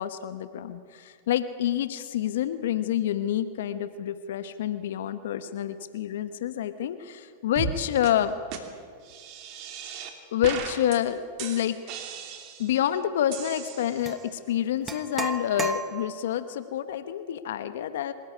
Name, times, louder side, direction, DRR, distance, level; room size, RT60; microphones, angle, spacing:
voice 1, 0.0-8.4 10.3-12.0 12.6-18.1, left 10 dB, 70° left, 11 dB, 1.0 m, -28 dB
sound 1, 7.6-7.8 8.0-8.1 8.5-8.6 9.0-10.1 10.4-11.0 11.4-12.8 13.3-14.3, right 7 dB, 50° right, 2.8 m, -37 dB
sound 2, 14.0-14.2 14.9-16.3, right 4 dB, 20° right, 1.3 m, -34 dB
24.5 x 13.5 x 9.8 m, 2.1 s
hypercardioid pair, 105°, 0 cm